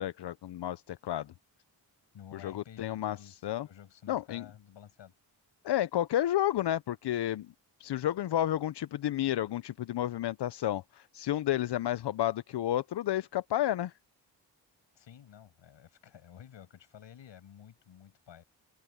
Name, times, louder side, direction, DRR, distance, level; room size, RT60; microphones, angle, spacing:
voice 1, 0.0-1.3 2.3-3.7 4.1-4.5 5.6-7.5 7.8-13.9, left 12 dB, 65° left, 0.7 m, -31 dB
voice 2, 2.1-5.1 15.0-18.4, left 9 dB, 80° left, 7.6 m, -52 dB
supercardioid pair, 50°, 44 cm